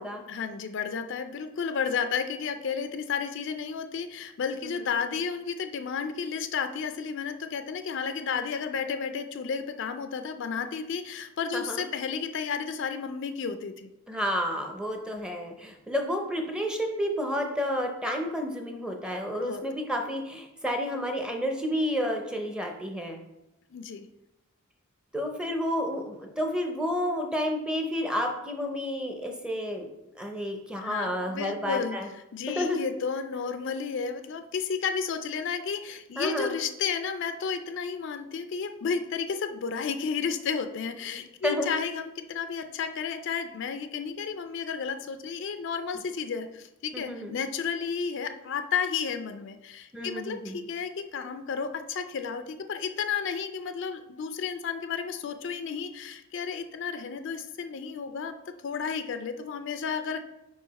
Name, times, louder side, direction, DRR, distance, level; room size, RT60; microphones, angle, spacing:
voice 1, 0.3-13.9 19.4-19.6 23.7-24.1 30.8-32.0 32.3-58.3 58.6-60.2, left 6 dB, 55° left, 8 dB, 0.4 m, -32 dB
voice 2, 11.5-11.8 14.1-23.2 25.1-29.9 30.2-32.1 32.6-32.8 36.2-36.5 41.4-41.7 46.9-47.3 49.9-50.6, equal, 5° right, 3 dB, 0.5 m, -30 dB
5.0 x 4.7 x 4.0 m, 0.92 s
head